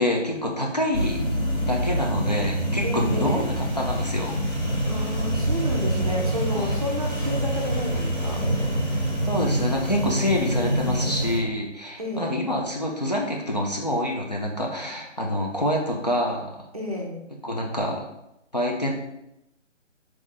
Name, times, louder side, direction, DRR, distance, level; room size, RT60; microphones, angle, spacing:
voice 1, 0.0-4.4 6.5-6.8 9.3-16.6 17.4-18.0 18.5-18.9, left 1 dB, 35° left, -1 dB, 0.4 m, -27 dB
sound 1, 0.9-11.4, right 1 dB, 10° left, 0.8 m, -26 dB
voice 2, 2.8-3.5 4.9-8.5 12.0-12.4 16.7-17.2, equal, 30° right, -1 dB, 0.5 m, -31 dB
3.6 x 3.0 x 3.7 m, 0.86 s
figure-of-eight pair, 145°, 37 cm